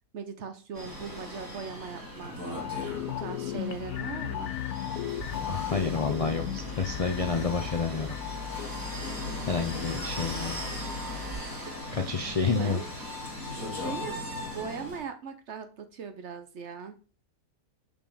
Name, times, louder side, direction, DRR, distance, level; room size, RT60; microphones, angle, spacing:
voice 1, 0.1-2.4 3.1-4.5 12.5-12.9 13.5-14.2 14.5-17.0, right 6 dB, 55° right, 8 dB, 0.9 m, -39 dB
sound 1, 0.7-15.0, left 1 dB, 15° right, 2.4 m, -38 dB
sound 2, 2.5-11.9 12.2-12.3, left 11 dB, 80° left, 1.1 m, -37 dB
sound 3, 5.2-11.4, left 6 dB, 85° right, 2.0 m, -42 dB
voice 2, 5.3-8.1 9.5-10.5 11.9-12.8, left 4 dB, 55° left, 6 dB, 0.3 m, -29 dB
5.4 x 5.4 x 4.9 m, 0.36 s
omnidirectional pair, 1.6 m